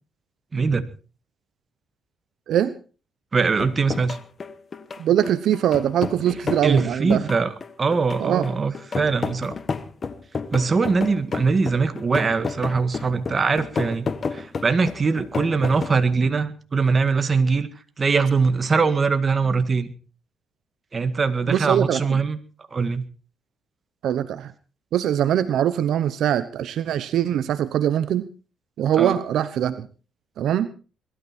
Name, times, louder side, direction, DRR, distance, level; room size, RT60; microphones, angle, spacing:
voice 1, 0.5-0.8 3.3-4.2 6.6-7.5 7.8-9.5 10.5-17.7 18.0-19.9 20.9-22.4 22.7-23.1 29.0-29.2, right 4 dB, 35° right, 10 dB, 1.8 m, -22 dB
sound 1, 3.4-16.0, left 5 dB, 40° left, 1.3 m, -31 dB
voice 2, 5.0-7.3 8.2-8.4 21.5-22.2 24.0-24.5 24.9-28.3 28.8-29.9 30.4-30.7, right 10 dB, 75° right, 13 dB, 1.0 m, -22 dB
21.5 x 13.0 x 4.4 m, 0.36 s
cardioid pair, 90°, 0 cm